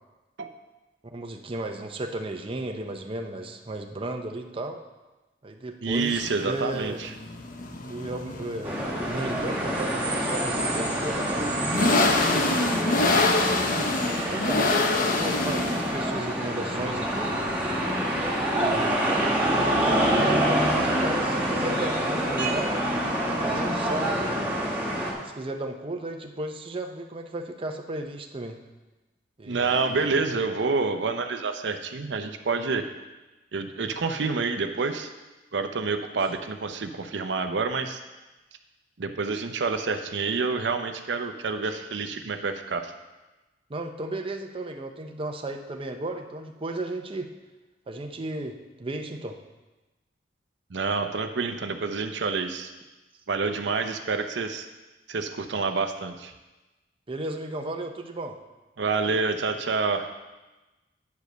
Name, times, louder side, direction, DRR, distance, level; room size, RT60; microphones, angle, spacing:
voice 1, 1.0-4.8 5.4-7.0 7.9-12.0 12.7-13.3 14.3-17.3 18.5-19.0 19.8-22.7 23.4-24.4 25.2-28.6 29.4-30.2 43.7-47.3 47.9-49.4 57.1-58.4, right 2 dB, 30° right, 4 dB, 0.7 m, -34 dB
voice 2, 5.8-7.1 29.5-32.9 33.5-35.1 35.5-38.0 39.0-42.9 50.7-52.7 53.3-54.7 55.1-56.3 58.8-60.1, right 4 dB, 75° right, 6 dB, 0.7 m, -28 dB
sound 1, 5.9-23.9, left 3 dB, 50° left, 0.8 m, -29 dB
sound 2, 8.6-25.1, right 1 dB, 10° right, 2.0 m, -26 dB
9.3 x 5.1 x 6.7 m, 1.1 s
head